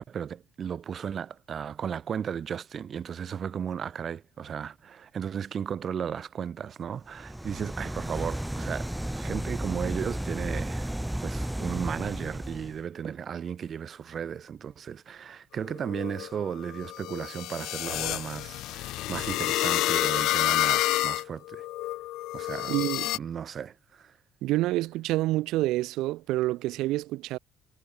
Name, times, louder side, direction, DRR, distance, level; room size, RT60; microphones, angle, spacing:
voice 1, 0.0-10.9 11.2-21.7 22.3-22.8 23.1-24.1, right 8 dB, 50° right, 3.1 m, -35 dB
sound 1, 7.1-12.8, right 1 dB, 5° right, 1.9 m, -33 dB
sound 2, 15.7-23.2, left 17 dB, 80° left, 4.6 m, -29 dB
voice 2, 22.7-23.1 24.4-27.4, right 17 dB, 80° right, 1.8 m, -27 dB
supercardioid pair, 85°, 0 cm